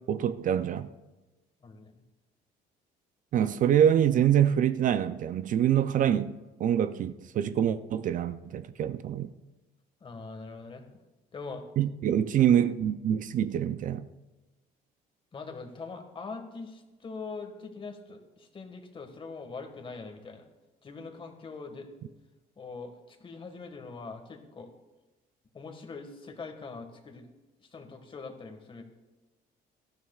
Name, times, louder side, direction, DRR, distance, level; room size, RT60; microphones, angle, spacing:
voice 1, 0.1-0.9 3.3-9.3 11.8-14.0, right 9 dB, 50° right, 12 dB, 0.5 m, -25 dB
voice 2, 10.0-10.8 11.3-11.6 15.3-20.4 20.8-21.9 22.6-24.7 25.5-27.2 27.7-28.8, left 4 dB, 30° left, 5 dB, 1.6 m, -42 dB
17.5 x 12.5 x 2.4 m, 1.1 s
cardioid pair, 110°, 17 cm